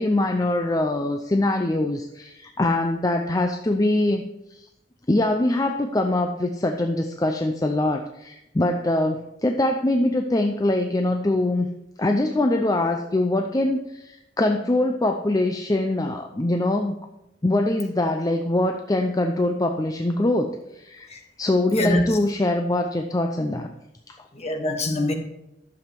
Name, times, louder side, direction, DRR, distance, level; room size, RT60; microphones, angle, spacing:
voice 1, 0.0-4.3 5.1-11.7 12.0-17.0 17.4-21.1 21.4-23.7 24.1-24.2, left 1 dB, 20° left, 5 dB, 0.5 m, -23 dB
voice 2, 21.7-22.2 24.3-25.1, left 1 dB, 40° left, 4 dB, 1.5 m, -24 dB
11.5 x 7.1 x 4.5 m, 0.87 s
head